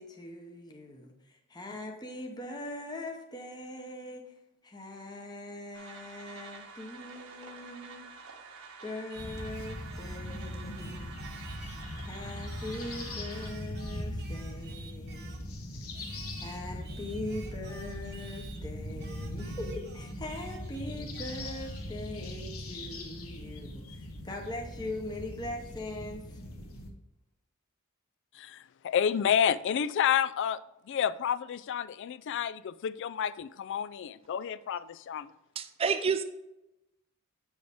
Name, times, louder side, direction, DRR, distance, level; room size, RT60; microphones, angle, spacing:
voice 1, 0.0-4.3 4.6-8.1 8.8-11.2 12.1-15.4 16.4-26.4, left 1 dB, 20° left, 0.8 m, -41 dB
sound 1, 5.7-13.5, right 4 dB, 75° right, 1.4 m, -49 dB
Singing, 9.1-12.0 12.5-15.5 15.9-18.6 19.0-21.9, right 5 dB, 50° right, 0.9 m, -53 dB
sound 2, 9.2-26.9, left 1 dB, 80° left, 1.3 m, -40 dB
voice 2, 28.4-30.6 30.9-35.3, left 8 dB, 55° left, 0.3 m, -30 dB
voice 3, 35.6-36.2, right 6 dB, 25° right, 0.4 m, -28 dB
8.5 x 6.3 x 3.5 m
head